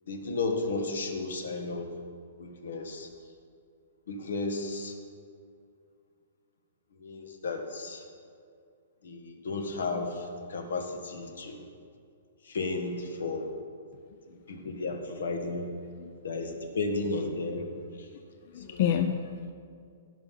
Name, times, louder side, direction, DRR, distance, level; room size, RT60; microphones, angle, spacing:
voice 1, 0.1-1.9 2.4-3.1 4.1-4.9 7.0-8.0 9.0-11.6 12.4-13.5 14.3-15.7 16.2-17.7 18.0-18.1 18.6-18.8, left 3 dB, 80° left, 5 dB, 1.5 m, -33 dB
voice 2, 18.5-19.5, left 8 dB, 40° left, 7 dB, 0.5 m, -29 dB
17.0 x 5.8 x 5.6 m, 2.3 s
hypercardioid pair, 170°, 0 cm